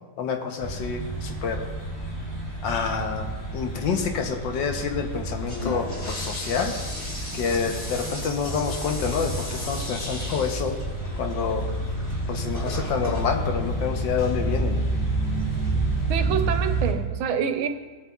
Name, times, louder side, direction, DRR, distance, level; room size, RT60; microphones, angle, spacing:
voice 1, 0.2-1.7 2.6-3.3 3.5-6.7 7.3-10.8 11.2-11.7 12.3-14.8, left 6 dB, 70° left, 4 dB, 1.5 m, -28 dB
sound 1, 0.6-16.9, right 2 dB, 15° left, 2.3 m, -29 dB
Toilet flush, 5.4-14.6, left 1 dB, 30° left, 2.4 m, -37 dB
voice 2, 16.1-17.7, right 7 dB, 85° right, 8 dB, 1.5 m, -27 dB
17.0 x 7.9 x 2.3 m, 1.3 s
omnidirectional pair, 2.2 m